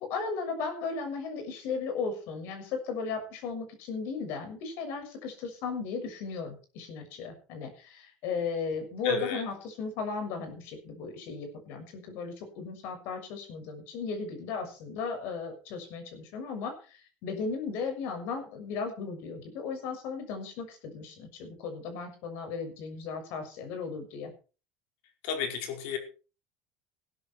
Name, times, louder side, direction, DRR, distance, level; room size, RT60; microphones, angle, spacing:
voice 1, 0.0-16.7 17.2-24.3, left 5 dB, 60° left, 6 dB, 6.6 m, -36 dB
voice 2, 9.0-9.4 25.2-26.0, left 6 dB, 75° left, 5 dB, 5.2 m, -32 dB
16.0 x 13.5 x 4.7 m, 0.36 s
cardioid pair, 165°, 4 cm